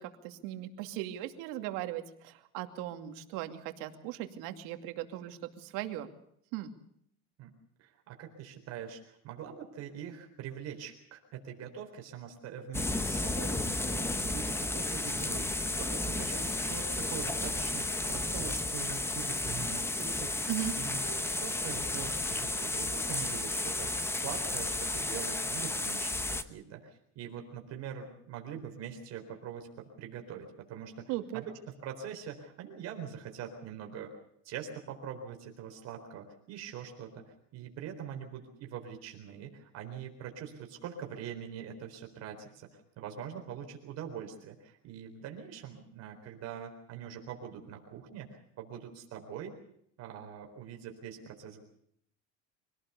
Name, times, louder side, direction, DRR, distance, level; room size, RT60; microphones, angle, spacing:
voice 1, 0.0-6.1 6.5-6.7 20.5-20.7 31.1-31.4, right 13 dB, 70° right, 6 dB, 2.6 m, -38 dB
voice 2, 7.8-15.5 15.8-31.5 31.8-34.1 34.4-42.7 43.0-49.6 50.0-51.6, right 8 dB, 50° right, 2 dB, 4.2 m, -43 dB
sound 1, 12.7-26.4, left 2 dB, 5° left, 1.0 m, -33 dB
25.0 x 18.0 x 7.0 m, 0.71 s
cardioid pair, 150°, 35 cm